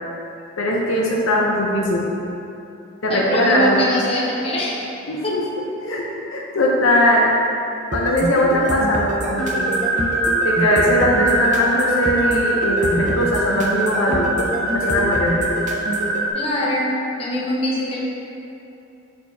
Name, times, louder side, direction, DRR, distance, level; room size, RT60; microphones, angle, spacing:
voice 1, 0.6-2.1 3.0-3.8 5.1-5.4 5.8-6.0 6.3-7.3 7.9-9.7 10.4-15.4, left 1 dB, 75° left, -3 dB, 0.7 m, -20 dB
voice 2, 3.1-4.8 5.2-5.4 16.3-18.0, equal, 30° left, -6 dB, 1.1 m, -23 dB
sound 1, 7.9-16.2, right 1 dB, 40° right, 0.6 m, -26 dB
sound 2, 9.4-16.3, right 1 dB, 65° right, 1.5 m, -23 dB
8.6 x 4.2 x 2.7 m, 2.8 s
head